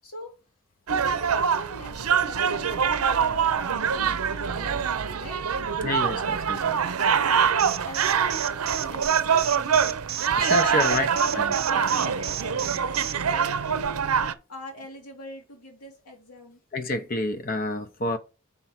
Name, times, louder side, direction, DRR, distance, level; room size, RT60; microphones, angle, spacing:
voice 1, 0.9-5.5 7.0-10.0 10.6-12.8 13.2-14.1 14.5-16.6, left 1 dB, 85° left, 1.8 m, -41 dB
sound 1, 0.9-14.3, right 7 dB, 80° right, 0.6 m, -24 dB
voice 2, 5.8-6.7 10.4-11.1 11.3-11.5 16.7-18.2, left 2 dB, 40° left, 0.7 m, -28 dB
Alarm, 7.6-13.1, right 13 dB, 45° right, 0.8 m, -32 dB
5.6 x 4.5 x 5.8 m
head